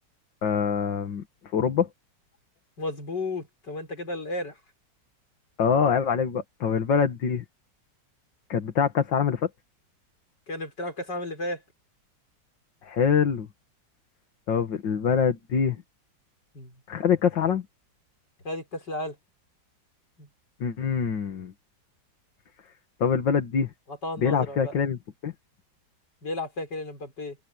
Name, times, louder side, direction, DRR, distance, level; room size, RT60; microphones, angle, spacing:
voice 1, 0.4-1.2 1.5-1.9 5.6-7.4 8.5-9.5 12.8-13.5 14.5-15.8 16.9-17.6 20.6-21.5 23.0-23.7 24.2-25.3, left 7 dB, 90° left, 2.3 m, -24 dB
voice 2, 2.8-4.6 10.5-11.6 16.5-16.8 18.4-19.2 20.2-20.3 23.9-24.7 26.2-27.4, left 2 dB, 70° left, 6.2 m, -33 dB
omnidirectional pair, 1.9 m